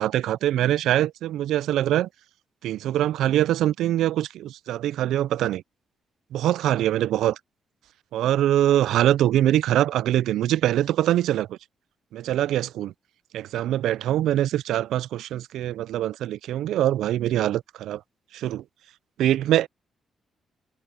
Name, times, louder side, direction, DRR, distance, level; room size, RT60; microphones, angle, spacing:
voice 1, 0.0-2.1 2.6-5.6 6.3-7.4 8.1-11.6 12.1-12.9 13.3-18.0 18.3-18.6 19.2-19.7, right 12 dB, 90° right, 0.3 m, -23 dB
cardioid pair, 115°, 0 cm